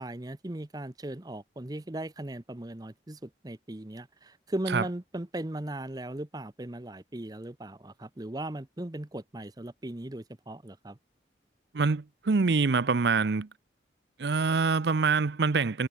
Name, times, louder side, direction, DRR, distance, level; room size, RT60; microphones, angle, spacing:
voice 1, 0.0-11.0, right 1 dB, 20° right, 0.8 m, -38 dB
voice 2, 11.7-13.5 14.2-15.9, right 4 dB, 70° right, 0.6 m, -25 dB
head